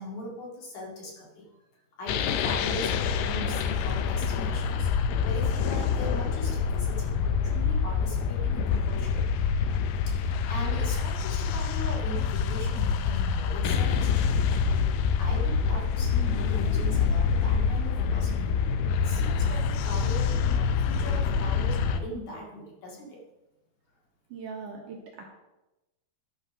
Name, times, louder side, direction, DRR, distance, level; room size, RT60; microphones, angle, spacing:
voice 1, 0.0-1.5 2.0-9.3 10.1-18.6 19.0-23.2, equal, 55° left, -3 dB, 3.3 m, -40 dB
sound 1, 2.1-22.0, left 6 dB, 80° left, 2.0 m, -26 dB
voice 2, 24.3-25.2, right 5 dB, 65° right, -1 dB, 2.4 m, -40 dB
11.5 x 5.5 x 6.0 m, 0.99 s
omnidirectional pair, 4.7 m